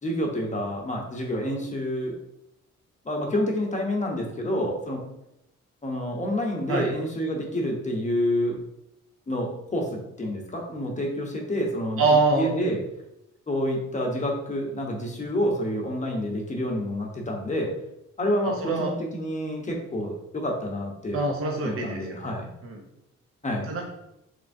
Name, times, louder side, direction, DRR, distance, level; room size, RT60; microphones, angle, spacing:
voice 1, 0.0-2.2 3.0-5.0 5.8-8.6 9.3-12.8 13.5-17.7 18.2-21.2 21.6-22.5 23.4-23.7, equal, 25° left, 0 dB, 0.9 m, -28 dB
voice 2, 12.0-12.5 18.4-18.9 21.1-22.2 22.6-22.8 23.7-23.9, right 3 dB, 45° right, 0 dB, 0.8 m, -24 dB
3.5 x 3.4 x 2.6 m, 0.84 s
cardioid pair, 90°, 30 cm